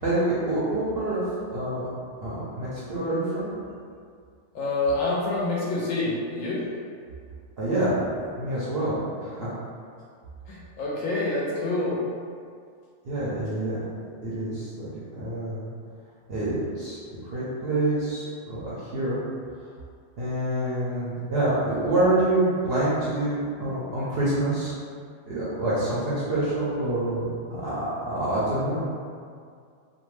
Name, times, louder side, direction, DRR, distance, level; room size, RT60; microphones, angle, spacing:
voice 1, 0.0-1.2 1.5-1.8 2.2-3.5 7.6-7.9 8.4-9.5 13.0-13.8 14.2-15.6 16.3-17.0 17.2-19.2 20.2-24.7 25.3-27.2 27.5-28.8, right 1 dB, 60° right, -10 dB, 0.7 m, -26 dB
voice 2, 4.5-6.6 10.5-12.1, left 2 dB, 70° left, -6 dB, 0.8 m, -27 dB
2.6 x 2.1 x 3.2 m, 2.2 s
omnidirectional pair, 1.6 m